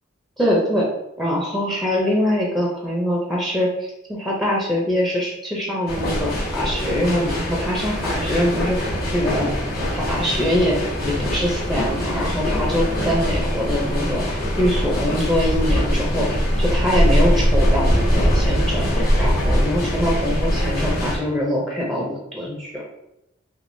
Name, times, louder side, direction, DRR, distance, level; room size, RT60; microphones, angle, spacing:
voice 1, 0.4-0.9 1.2-9.5 9.9-10.8 11.0-16.3 16.6-22.8, equal, ahead, -3 dB, 0.5 m, -23 dB
sound 1, 5.9-21.2, equal, 55° left, 1.1 m, -22 dB
3.4 x 2.8 x 2.6 m, 0.85 s
head